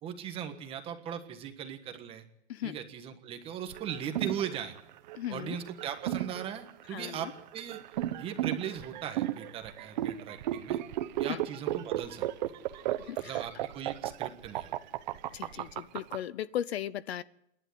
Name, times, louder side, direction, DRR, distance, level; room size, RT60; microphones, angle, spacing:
voice 1, 0.0-2.2 2.6-4.8 5.3-7.8 8.2-10.8 11.2-12.5 13.2-14.7 15.5-15.7, right 9 dB, 15° right, 7 dB, 1.4 m, -39 dB
sound 1, 3.7-16.2, right 13 dB, 40° right, 1.1 m, -34 dB
voice 2, 5.2-5.6 6.9-7.2 11.3-11.4 13.0-13.4 15.3-17.2, left 11 dB, 60° left, 19 dB, 0.8 m, -36 dB
27.5 x 11.0 x 9.5 m, 0.77 s
supercardioid pair, 170°, 36 cm